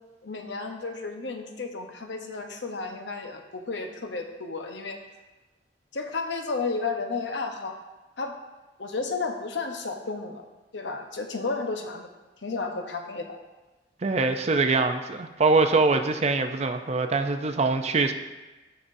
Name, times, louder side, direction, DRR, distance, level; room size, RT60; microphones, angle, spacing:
voice 1, 0.2-5.0 5.9-7.8 8.2-8.4 8.8-10.4 10.7-12.1 12.4-13.4, left 4 dB, 75° left, 4 dB, 0.9 m, -32 dB
voice 2, 14.0-18.1, right 3 dB, 35° right, 7 dB, 0.5 m, -23 dB
16.0 x 5.5 x 2.7 m, 1.2 s
head